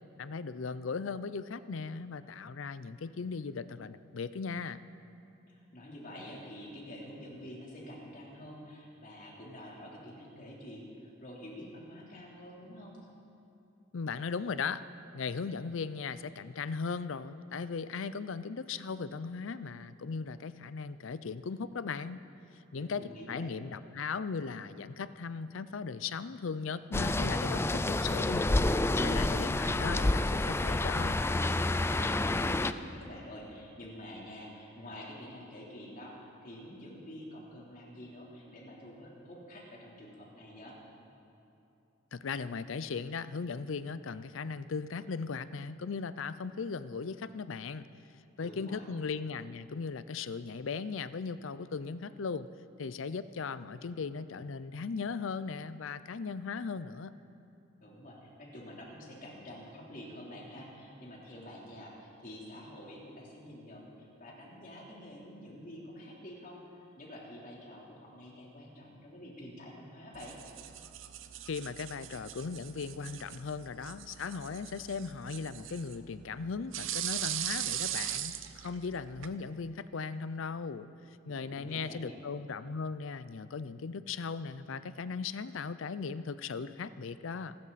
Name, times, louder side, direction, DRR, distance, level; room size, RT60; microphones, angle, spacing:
voice 1, 0.2-4.9 13.9-14.8 15.1-22.2 22.7-31.2 42.1-47.9 48.4-52.5 52.8-57.1 71.5-80.9 81.3-87.6, left 5 dB, 70° left, 14 dB, 0.5 m, -38 dB
voice 2, 5.5-13.0 22.7-23.6 32.0-40.8 48.4-48.9 57.8-70.4 81.3-82.2, equal, 45° left, -4 dB, 3.5 m, -48 dB
sound 1, 26.9-32.7, left 2 dB, 15° left, 0.4 m, -29 dB
sound 2, 70.1-79.4, right 11 dB, 75° right, 0.7 m, -40 dB
26.0 x 13.0 x 4.2 m, 2.9 s
head